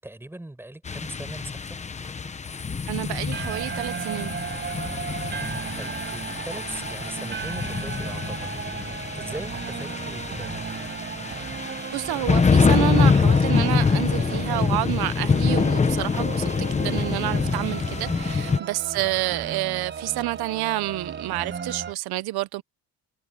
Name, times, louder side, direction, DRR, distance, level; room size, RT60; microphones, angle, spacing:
voice 1, 0.0-1.8 5.8-10.6 19.0-19.2, right 1 dB, 5° right, 6.1 m, -40 dB
sound 1, 0.9-18.6, left 5 dB, 20° left, 0.9 m, -25 dB
sound 2, 2.4-8.7, left 7 dB, 35° left, 2.9 m, -44 dB
voice 2, 2.9-4.3 11.9-22.6, right 18 dB, 85° right, 0.7 m, -29 dB
sound 3, 3.3-21.9, right 6 dB, 30° right, 4.7 m, -35 dB
cardioid pair, 170°, 37 cm